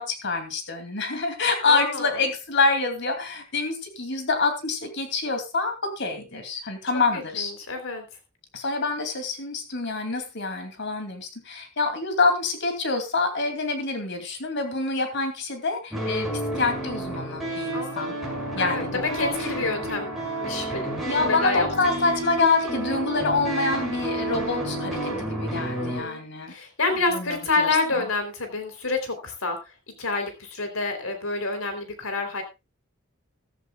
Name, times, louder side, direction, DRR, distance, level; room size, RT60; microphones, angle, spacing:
voice 1, 0.0-7.5 8.5-16.3 16.6-18.2 18.5-19.3 21.1-26.5 27.1-28.0, left 3 dB, 60° left, 6 dB, 2.8 m, -26 dB
voice 2, 1.6-2.2 7.1-8.1 17.7-20.2 20.4-21.9 25.7-26.2 26.5-29.7 30.0-32.4, left 3 dB, 90° left, 6 dB, 3.6 m, -28 dB
sound 1, 15.9-26.0, right 1 dB, ahead, 5.7 m, -30 dB
14.5 x 13.5 x 2.4 m, 0.26 s
head